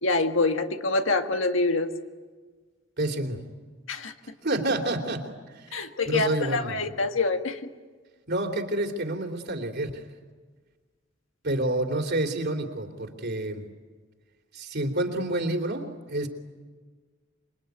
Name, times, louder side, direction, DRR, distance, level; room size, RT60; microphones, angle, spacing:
voice 1, 0.0-1.9 3.9-4.1 5.7-7.7, left 3 dB, 75° left, 6 dB, 1.7 m, -26 dB
voice 2, 3.0-3.4 4.4-6.8 8.3-10.0 11.4-13.7 14.5-16.3, right 1 dB, 55° right, 3 dB, 3.2 m, -29 dB
26.5 x 23.0 x 9.3 m, 1.4 s
head